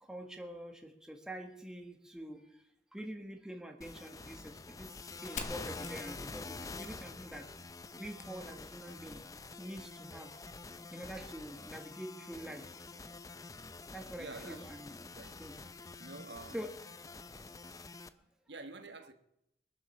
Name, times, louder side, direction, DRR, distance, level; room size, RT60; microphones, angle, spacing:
voice 1, 0.0-2.6 2.9-7.5 8.0-9.2 9.6-10.3 10.9-12.9 13.9-15.1 15.4-15.5 16.5-16.7, equal, 5° right, 1.4 m, -46 dB
sound 1, 3.8-18.1, left 3 dB, 20° left, 0.5 m, -47 dB
Fire, 5.4-9.0, left 4 dB, 45° left, 1.3 m, -48 dB
voice 2, 14.2-14.9 15.1-15.5 16.0-16.6 18.5-19.1, right 3 dB, 80° right, 1.3 m, -48 dB
22.5 x 7.6 x 6.8 m
head